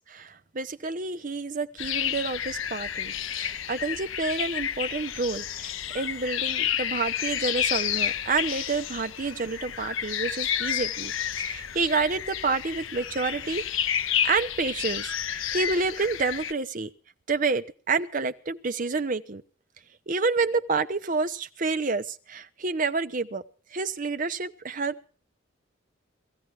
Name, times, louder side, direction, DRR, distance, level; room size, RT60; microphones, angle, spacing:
voice 1, 0.1-13.6 14.2-16.9 17.3-19.4 20.1-23.4 23.7-25.1, right 4 dB, 40° right, 10 dB, 0.8 m, -29 dB
sound 1, 1.8-16.5, left 9 dB, 75° left, 0.7 m, -30 dB
18.0 x 14.5 x 4.8 m, 0.39 s
head